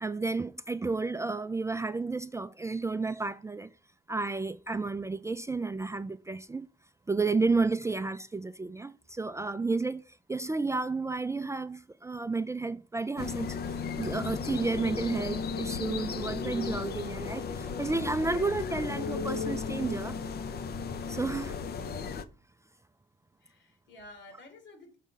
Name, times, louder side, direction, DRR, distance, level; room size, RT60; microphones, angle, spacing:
voice 1, 0.0-3.7 4.1-6.7 7.1-10.0 10.3-13.6 14.0-20.2 21.1-21.5, right 3 dB, 15° right, 0.4 m, -31 dB
sound 1, 13.2-22.2, left 5 dB, 50° left, 0.8 m, -35 dB
voice 2, 23.4-25.0, left 2 dB, 70° left, 3.0 m, -52 dB
6.4 x 3.7 x 5.6 m
cardioid pair, 90°, 20 cm